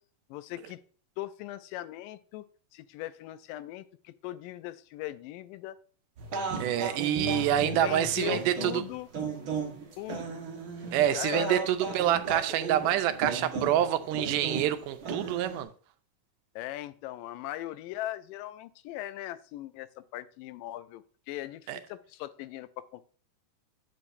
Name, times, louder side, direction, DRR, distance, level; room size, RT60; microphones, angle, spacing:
voice 1, 0.3-0.8 1.2-2.4 2.7-5.8 7.1-7.5 7.8-9.1 10.0-10.3 11.1-11.6 16.6-23.1, left 15 dB, 85° left, 2.2 m, -39 dB
sound 1, 6.2-15.6, right 4 dB, 50° right, 1.7 m, -36 dB
voice 2, 6.6-8.8 10.9-15.7 21.7-21.8, right 11 dB, 85° right, 2.1 m, -27 dB
8.4 x 7.7 x 2.6 m
omnidirectional pair, 3.8 m